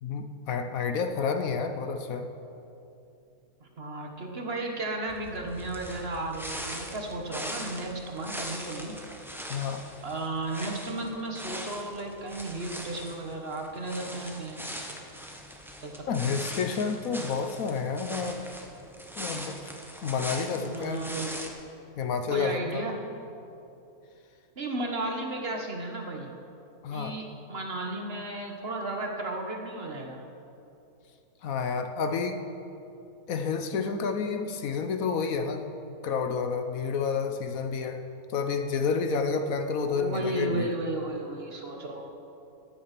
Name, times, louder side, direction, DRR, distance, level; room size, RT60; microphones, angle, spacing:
voice 1, 0.0-2.3 9.5-9.8 16.1-18.5 19.1-19.7 20.0-21.0 22.0-22.9 26.8-27.2 31.4-32.4 33.3-38.0 38.3-40.7, left 5 dB, 70° left, 7 dB, 1.2 m, -30 dB
voice 2, 3.6-9.0 10.0-14.6 15.8-16.4 20.5-21.3 22.3-23.0 24.6-26.3 26.9-30.2 39.9-42.1, right 2 dB, 45° right, 2 dB, 1.4 m, -34 dB
sound 1, 5.1-21.5, equal, ahead, 0.9 m, -41 dB
14.0 x 9.6 x 5.9 m, 2.7 s
omnidirectional pair, 1.6 m